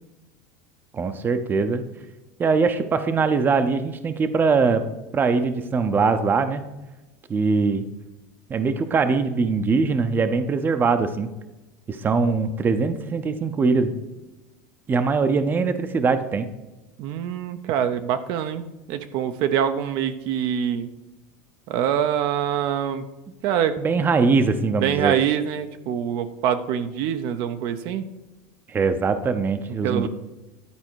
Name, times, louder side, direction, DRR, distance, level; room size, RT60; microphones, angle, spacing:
voice 1, 0.9-1.8 2.4-4.8 5.1-6.6 7.3-7.8 8.5-11.3 11.9-13.9 14.9-16.5 23.8-25.2 28.7-30.1, right 4 dB, 25° right, 10 dB, 0.6 m, -22 dB
voice 2, 17.0-20.9 21.7-23.0 23.4-23.8 24.7-28.0 29.8-30.1, right 9 dB, 60° right, 9 dB, 0.6 m, -25 dB
11.0 x 4.4 x 4.6 m, 1.1 s
supercardioid pair, 120°, 9 cm